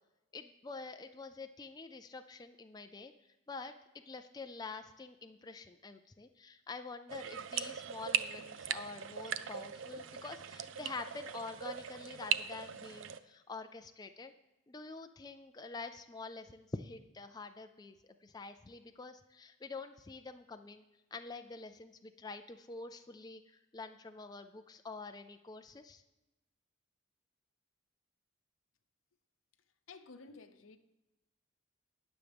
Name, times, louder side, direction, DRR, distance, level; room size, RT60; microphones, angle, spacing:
voice 1, 0.3-3.1 3.5-3.7 4.1-14.3 14.7-20.8 21.1-26.0, left 3 dB, 20° left, 0.4 m, -47 dB
sound 1, 7.1-13.2, right 9 dB, 70° right, 0.5 m, -39 dB
voice 2, 29.9-30.8, left 4 dB, 80° left, 0.7 m, -53 dB
19.0 x 7.1 x 3.5 m
head